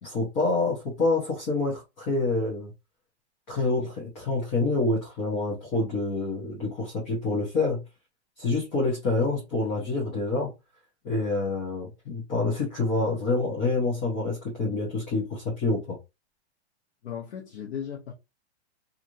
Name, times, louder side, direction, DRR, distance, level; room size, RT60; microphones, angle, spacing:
voice 1, 0.0-2.7 3.5-7.8 8.4-10.5 11.0-16.0, left 3 dB, 15° left, 0.6 m, -27 dB
voice 2, 17.0-18.1, left 8 dB, 70° left, 0.9 m, -36 dB
3.0 x 2.5 x 2.5 m
hypercardioid pair, 170°, 33 cm